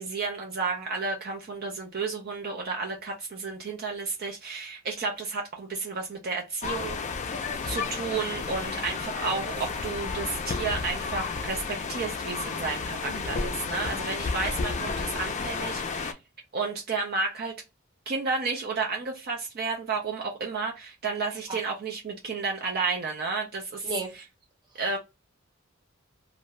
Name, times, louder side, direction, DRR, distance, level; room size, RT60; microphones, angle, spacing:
voice 1, 0.0-7.0 7.6-16.2 16.5-17.6 18.1-24.2 24.8-25.0, right 4 dB, 50° right, 0.5 m, -32 dB
sound 1, 6.6-16.1, left 4 dB, 35° left, 0.4 m, -32 dB
voice 2, 13.0-13.3 21.5-21.6 23.8-24.1, right 2 dB, 20° right, 0.9 m, -34 dB
2.5 x 2.3 x 2.9 m
head